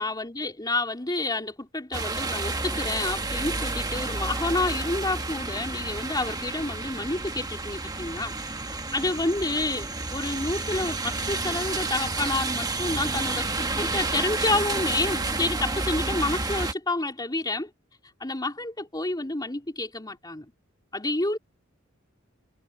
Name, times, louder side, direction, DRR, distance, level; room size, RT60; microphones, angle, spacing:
voice 1, 0.0-8.3 8.9-17.7 18.2-20.5 20.9-21.4, left 2 dB, 20° left, 3.7 m, -29 dB
sound 1, 1.9-16.7, right 3 dB, 20° right, 1.3 m, -30 dB
head